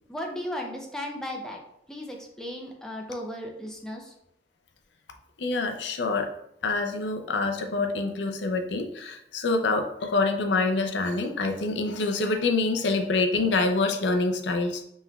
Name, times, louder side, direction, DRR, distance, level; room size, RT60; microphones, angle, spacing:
voice 1, 0.1-1.6 1.9-4.1, left 1 dB, 5° left, 0 dB, 0.5 m, -35 dB
voice 2, 5.4-6.3 6.6-14.8, left 3 dB, 80° left, 6 dB, 0.5 m, -26 dB
5.5 x 3.1 x 2.3 m, 0.76 s
head